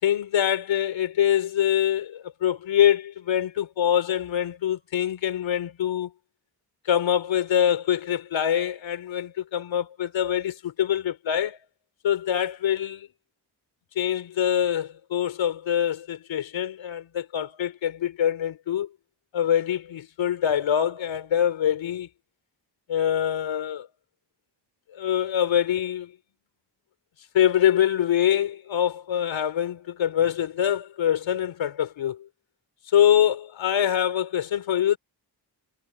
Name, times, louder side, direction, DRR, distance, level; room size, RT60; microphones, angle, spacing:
voice 1, 0.0-6.1 6.9-11.6 12.0-13.1 14.0-18.9 19.3-22.1 22.9-23.9 24.9-26.1 27.3-32.3 32.9-35.0, left 10 dB, 80° left, 3.7 m, -24 dB
supercardioid pair, 50°, 45 cm